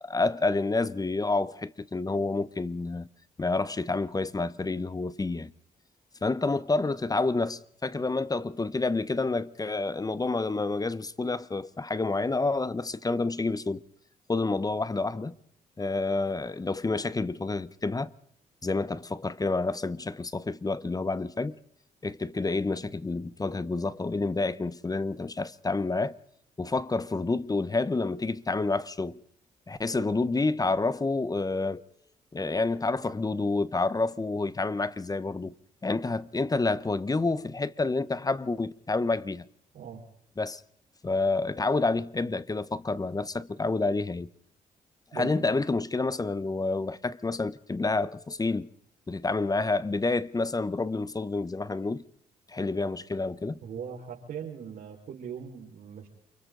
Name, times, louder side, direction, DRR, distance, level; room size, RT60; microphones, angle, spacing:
voice 1, 0.0-3.1 3.4-5.5 6.2-13.8 14.3-15.3 15.8-18.1 18.6-21.6 22.0-26.2 26.6-29.2 29.7-31.8 32.3-35.5 35.8-39.4 40.4-40.6 41.0-44.3 45.1-48.7 49.1-52.0 52.5-53.6, left 3 dB, 25° left, 1.0 m, -29 dB
voice 2, 39.7-40.0 45.1-45.5 53.6-56.1, right 7 dB, 70° right, 5.1 m, -40 dB
29.0 x 23.5 x 4.0 m
supercardioid pair, 65°, 15 cm